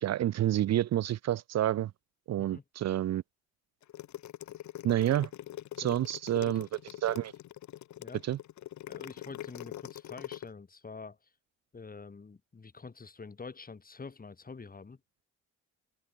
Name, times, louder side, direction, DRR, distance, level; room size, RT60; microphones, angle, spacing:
voice 1, 0.0-1.9 2.3-3.2 4.8-5.3 5.8-6.7 7.0-7.3 8.2-8.4, right 12 dB, 60° right, 0.7 m, -29 dB
sound 1, 3.8-10.5, left 13 dB, 70° left, 1.4 m, -43 dB
voice 2, 8.9-11.2 11.7-15.0, left 4 dB, 30° left, 4.3 m, -46 dB
cardioid pair, 90°, 30 cm